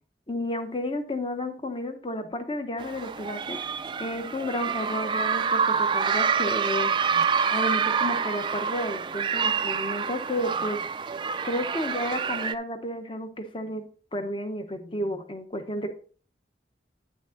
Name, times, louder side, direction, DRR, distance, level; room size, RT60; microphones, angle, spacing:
voice 1, 0.3-3.6 4.0-10.8 11.4-13.8 14.1-15.9, left 1 dB, 30° left, 7 dB, 1.0 m, -32 dB
sound 1, 2.8-12.5, right 6 dB, 25° right, 0.3 m, -27 dB
9.3 x 6.2 x 3.9 m, 0.42 s
head